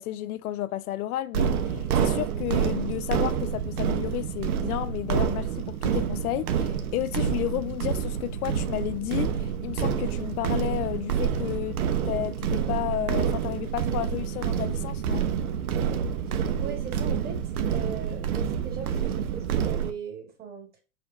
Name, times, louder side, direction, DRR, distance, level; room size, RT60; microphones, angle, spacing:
voice 1, 0.0-11.8 12.0-15.3, left 14 dB, 75° left, 0.6 m, -32 dB
sound 1, 1.3-19.9, right 8 dB, 75° right, 1.0 m, -28 dB
voice 2, 16.3-17.4 17.7-20.7, right 7 dB, 20° right, 1.5 m, -39 dB
5.0 x 4.3 x 2.4 m
hypercardioid pair, 135°, 45 cm